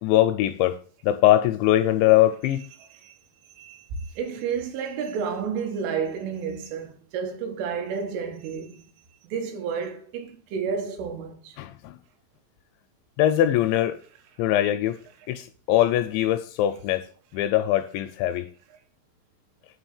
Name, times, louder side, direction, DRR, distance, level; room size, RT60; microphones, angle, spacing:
voice 1, 0.0-0.8 1.0-2.6 11.6-12.0 13.2-14.0 14.4-15.0 15.3-17.1 17.3-18.5, left 13 dB, 85° left, 2.6 m, -22 dB
voice 2, 4.2-8.9 9.2-11.6, right 6 dB, 85° right, 3.8 m, -31 dB
8.9 x 4.0 x 7.0 m
omnidirectional pair, 5.5 m